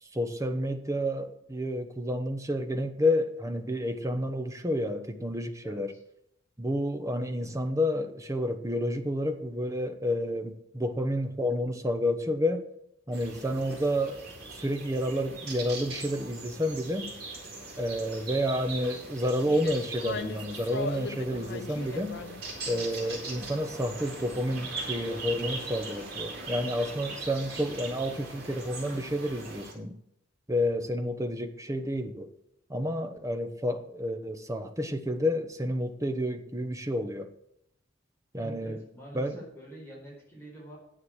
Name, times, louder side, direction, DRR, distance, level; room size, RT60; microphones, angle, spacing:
voice 1, 0.0-5.9 6.6-12.7 13.1-17.1 17.8-22.2 22.7-29.9 30.5-32.3 32.7-37.3 38.3-38.8 39.1-39.4, equal, 15° right, 8 dB, 0.9 m, -30 dB
voice 2, 5.6-6.0 38.4-40.8, right 1 dB, 15° left, -4 dB, 4.4 m, -46 dB
sound 1, 13.1-29.7, right 3 dB, 55° right, 4.4 m, -40 dB
sound 2, 19.4-25.6, left 4 dB, 60° left, 0.7 m, -41 dB
10.0 x 8.2 x 6.3 m, 0.76 s
head